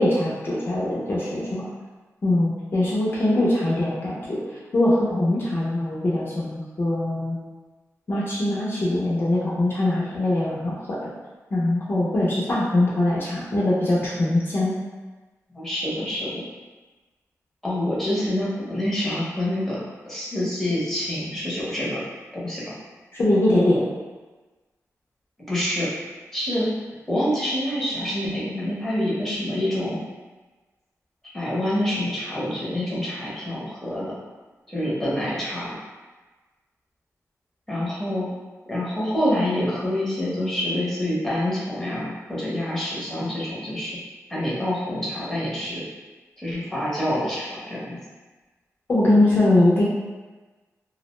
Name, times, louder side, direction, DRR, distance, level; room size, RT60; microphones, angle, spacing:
voice 1, 0.0-1.6 2.2-4.4 4.7-7.4 8.1-11.0 11.5-14.7 23.1-23.8 48.9-49.8, left 1 dB, 40° left, -7 dB, 0.5 m, -22 dB
voice 2, 5.1-5.5 15.5-16.3 17.6-19.8 20.1-22.0 22.3-22.8 25.5-25.9 26.3-26.7 27.1-30.0 31.3-34.1 34.7-35.8 37.7-38.3 38.7-44.0 44.3-45.8 46.4-48.0, left 1 dB, 5° left, -8 dB, 0.7 m, -26 dB
2.4 x 2.1 x 3.0 m, 1.3 s
wide cardioid pair, 140°, 6 cm